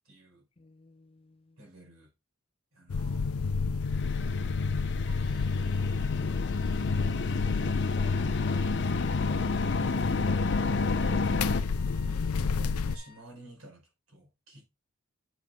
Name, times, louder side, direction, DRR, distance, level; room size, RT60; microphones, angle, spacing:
voice 1, 0.0-0.4 1.6-2.1 2.7-3.3 11.9-14.6, right 1 dB, 65° right, 5.1 m, -52 dB
voice 2, 0.6-1.6 6.2-11.2, left 3 dB, 25° left, 0.4 m, -54 dB
sound 1, 2.9-13.0, left 4 dB, 80° left, 0.5 m, -30 dB
sound 2, 3.8-11.6, left 3 dB, 55° left, 0.8 m, -32 dB
Wind instrument woodwind instrument, 5.1-13.2, left 5 dB, 10° right, 1.9 m, -56 dB
9.5 x 5.6 x 3.6 m
head